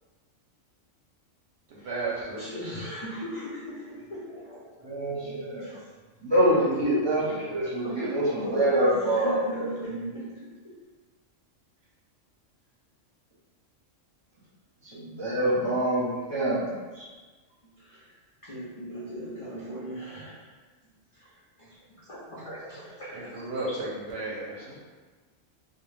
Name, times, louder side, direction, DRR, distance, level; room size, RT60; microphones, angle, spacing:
voice 1, 1.7-2.9 23.1-24.8, right 2 dB, 65° right, -5 dB, 0.7 m, -34 dB
voice 2, 2.4-4.9 5.2-5.9 7.2-7.5 7.8-8.1 8.4-10.8 17.8-18.2 18.4-20.6 21.1-23.4, right 1 dB, 60° left, -9 dB, 0.3 m, -40 dB
voice 3, 4.8-5.7 6.2-10.0 14.8-17.1, right 1 dB, 30° right, -9 dB, 0.6 m, -26 dB
2.1 x 2.1 x 3.1 m, 1.3 s
omnidirectional pair, 1.3 m